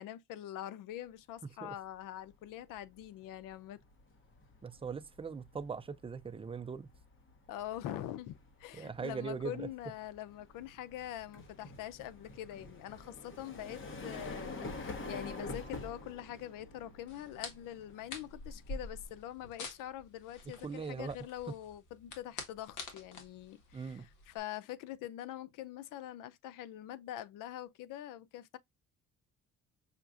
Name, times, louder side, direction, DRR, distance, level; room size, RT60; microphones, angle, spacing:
voice 1, 0.0-3.8 7.5-28.6, left 12 dB, 85° left, 0.5 m, -44 dB
sound 1, 2.0-2.3 2.7-19.4, left 2 dB, 40° left, 1.2 m, -48 dB
voice 2, 4.6-6.9 8.7-9.7 20.6-21.2 23.7-24.1, right 5 dB, 20° right, 0.5 m, -40 dB
sound 2, 17.1-24.4, left 3 dB, 70° left, 1.5 m, -47 dB
5.8 x 2.4 x 2.4 m
cardioid pair, 100°, 31 cm